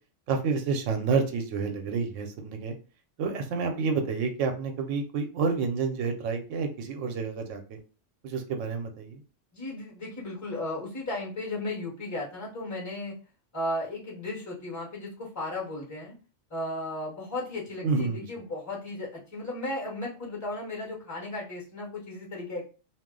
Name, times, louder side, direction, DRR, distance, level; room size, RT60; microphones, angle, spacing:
voice 1, 0.3-2.7 3.2-7.8 8.2-9.2 17.8-18.3, right 5 dB, 80° right, 5 dB, 1.0 m, -29 dB
voice 2, 9.5-13.1 13.5-16.1 16.5-22.6, left 2 dB, 15° left, -3 dB, 0.9 m, -35 dB
2.4 x 2.0 x 3.6 m, 0.35 s
omnidirectional pair, 1.3 m